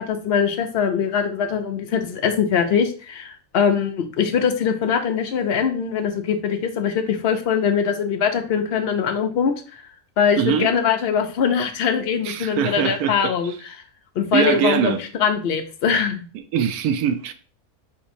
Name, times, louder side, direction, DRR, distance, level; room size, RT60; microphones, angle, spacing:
voice 1, 0.0-9.8 10.2-13.7 14.2-16.3, left 7 dB, 55° left, 0.7 m, -22 dB
voice 2, 10.4-10.7 12.2-13.3 14.3-15.0 16.5-17.3, right 8 dB, 90° right, 1.1 m, -22 dB
6.0 x 2.9 x 2.6 m
omnidirectional pair, 1.5 m